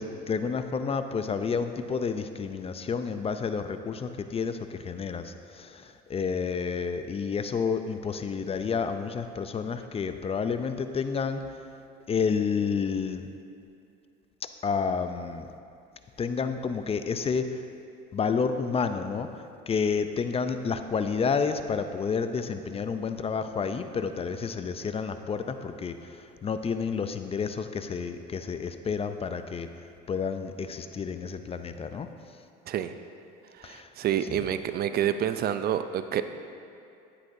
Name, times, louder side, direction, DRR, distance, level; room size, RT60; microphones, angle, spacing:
voice 1, 0.0-11.5 12.1-13.3 14.6-15.5 16.2-17.6 18.1-19.3 19.7-29.7 30.1-32.1 33.6-33.9 34.3-34.4, left 5 dB, 30° left, 9 dB, 0.5 m, -30 dB
voice 2, 33.6-36.2, right 10 dB, 50° right, 10 dB, 0.5 m, -28 dB
10.5 x 9.9 x 2.7 m, 2.6 s
supercardioid pair, 80°, 21 cm